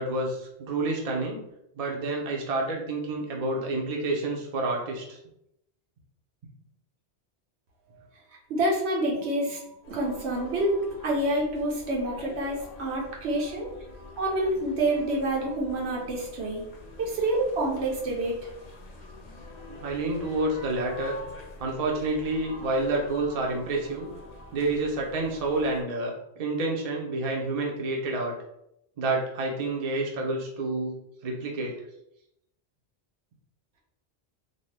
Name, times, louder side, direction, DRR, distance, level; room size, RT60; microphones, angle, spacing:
voice 1, 0.0-1.4 1.8-5.2 19.8-21.2 21.6-24.1 24.5-28.3 29.0-30.9 31.2-31.8, right 2 dB, 45° right, -1 dB, 0.6 m, -29 dB
voice 2, 8.5-10.8 11.0-13.7 14.2-16.6 17.0-18.3, right 1 dB, 80° right, -2 dB, 1.0 m, -27 dB
sound 1, 9.8-25.8, left 2 dB, 50° left, 0.5 m, -46 dB
2.7 x 2.2 x 3.2 m, 0.80 s
omnidirectional pair, 1.1 m